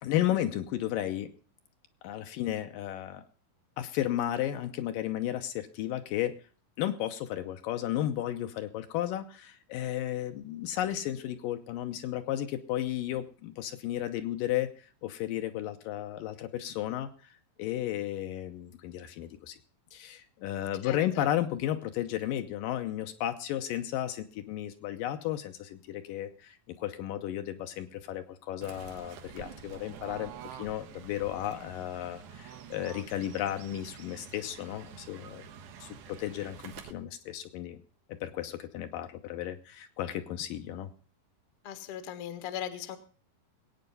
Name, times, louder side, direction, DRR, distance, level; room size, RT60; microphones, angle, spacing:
voice 1, 0.0-1.3 2.0-3.3 3.8-6.3 6.8-17.3 17.6-19.6 19.9-35.5 35.8-37.8 38.1-40.9, left 12 dB, 75° left, 7 dB, 2.4 m, -33 dB
voice 2, 20.8-21.2 41.6-43.0, left 10 dB, 55° left, 11 dB, 1.6 m, -39 dB
Fowl / Bird, 28.6-36.9, right 8 dB, 85° right, 3.1 m, -47 dB
20.5 x 8.9 x 5.4 m, 0.40 s
omnidirectional pair, 4.2 m